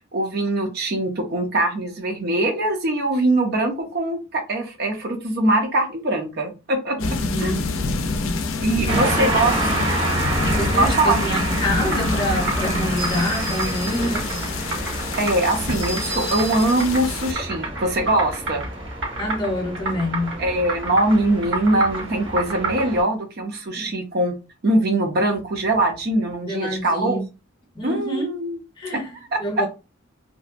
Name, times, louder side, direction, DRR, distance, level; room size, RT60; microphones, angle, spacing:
voice 1, 0.1-7.0 7.4-7.5 8.6-9.5 10.0-10.1 10.8-11.2 15.2-18.6 20.4-24.3 24.6-27.2 27.8-28.6 28.9-29.4, right 1 dB, 55° right, 0.6 m, -22 dB
sound 1, 7.0-17.3, left 3 dB, 85° left, 0.4 m, -27 dB
voice 2, 7.0-7.7 8.7-9.7 10.4-14.3 19.2-20.4 23.8-23.9 26.5-27.2 27.7-28.3 28.8-29.7, equal, 25° left, 0.7 m, -27 dB
sound 2, 8.9-23.0, right 2 dB, 75° right, 1.1 m, -27 dB
2.6 x 2.2 x 2.5 m
head